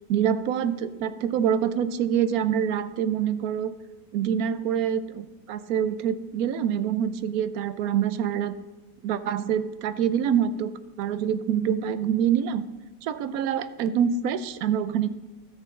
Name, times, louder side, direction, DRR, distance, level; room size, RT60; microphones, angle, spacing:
voice 1, 0.1-3.7 4.1-8.5 9.0-10.7 11.0-12.6 13.0-15.1, right 8 dB, 80° right, 13 dB, 1.1 m, -25 dB
13.0 x 6.5 x 3.6 m, 1.2 s
omnidirectional pair, 1.5 m